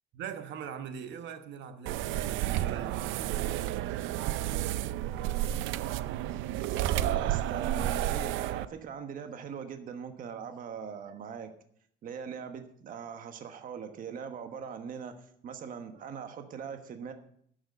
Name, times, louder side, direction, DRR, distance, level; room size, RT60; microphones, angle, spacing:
voice 1, 0.1-3.4, right 8 dB, 70° right, 8 dB, 1.1 m, -41 dB
sound 1, 1.9-8.7, right 13 dB, 90° right, 0.5 m, -31 dB
voice 2, 6.7-11.5 12.0-17.1, right 7 dB, 45° right, 7 dB, 1.2 m, -41 dB
10.5 x 8.0 x 7.7 m, 0.66 s
cardioid pair, 165°, 19 cm